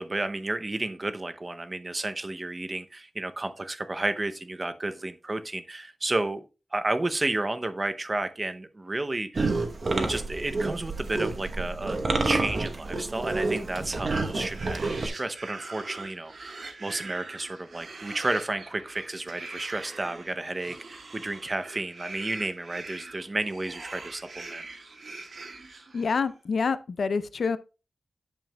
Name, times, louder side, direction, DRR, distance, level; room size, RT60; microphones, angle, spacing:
voice 1, 0.0-6.5 6.7-9.4 10.0-12.0 12.2-24.6, right 2 dB, 30° right, 0.6 m, -32 dB
sound 1, 9.3-15.1, right 3 dB, 55° right, 0.9 m, -29 dB
sound 2, 14.3-26.3, right 3 dB, 75° right, 1.5 m, -43 dB
voice 2, 25.9-27.6, left 5 dB, 75° left, 0.4 m, -27 dB
9.1 x 6.9 x 2.2 m
wide cardioid pair, 100°, 0 cm